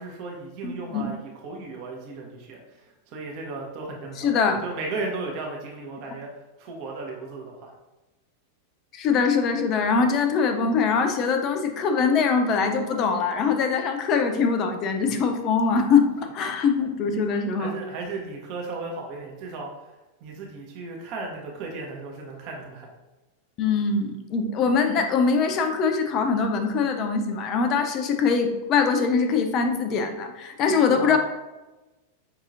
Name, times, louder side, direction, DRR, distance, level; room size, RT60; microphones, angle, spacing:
voice 1, 0.0-4.4 4.6-6.3 6.6-7.7 17.6-19.7 20.2-22.9 30.9-31.2, right 3 dB, 45° right, -1 dB, 0.8 m, -35 dB
voice 2, 0.6-1.1 4.2-4.6 8.9-16.1 16.3-17.7 23.6-31.2, left 5 dB, 35° left, 6 dB, 0.5 m, -23 dB
5.3 x 2.8 x 2.5 m, 1.1 s
figure-of-eight pair, 90°, 0 cm